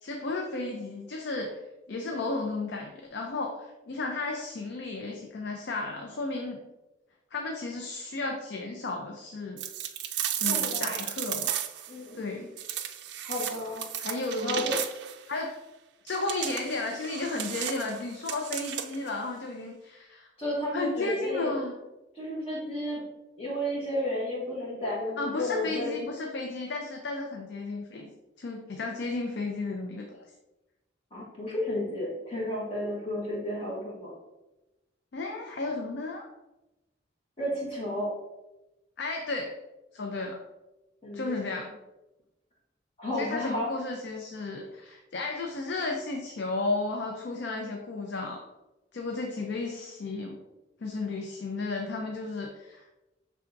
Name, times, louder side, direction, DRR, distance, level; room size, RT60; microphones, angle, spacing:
voice 1, 0.0-1.6 1.9-6.6 7.3-9.6 10.3-11.5 12.1-12.5 14.0-14.7 15.3-15.5 16.0-20.3 20.7-21.7 25.2-28.1 28.4-30.2 35.1-36.3 39.0-39.6 39.9-40.4 41.1-41.7 43.2-48.5 48.9-50.4 50.8-52.9, left 3 dB, 60° left, 2 dB, 0.4 m, -33 dB
sound 1, 9.6-11.9 12.6-15.2 16.1-19.1, right 10 dB, 60° right, 0.3 m, -34 dB
voice 2, 10.5-11.0 11.9-12.4 13.2-13.8 14.4-14.8 20.4-21.6 22.1-23.0 23.4-26.0 31.1-34.1 37.4-38.1 41.0-41.7 43.0-43.7, left 1 dB, 30° left, -5 dB, 1.2 m, -32 dB
5.6 x 3.4 x 2.5 m, 1.0 s
head